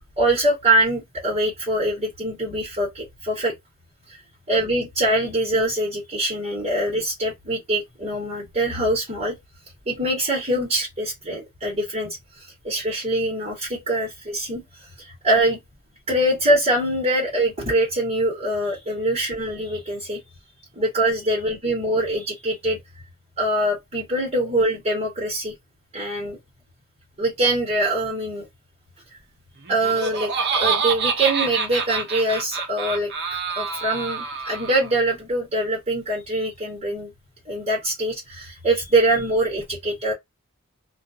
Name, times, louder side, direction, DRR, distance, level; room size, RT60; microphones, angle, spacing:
voice 1, 0.2-3.5 4.1-4.2 4.5-9.3 9.9-15.6 16.1-20.2 20.7-22.8 23.4-25.5 25.9-26.4 27.2-28.5 29.7-37.1 37.4-40.1, right 1 dB, 30° right, 1.3 m, -24 dB
Laughter, 29.7-34.9, right 5 dB, 50° right, 0.7 m, -26 dB
2.5 x 2.4 x 2.6 m
head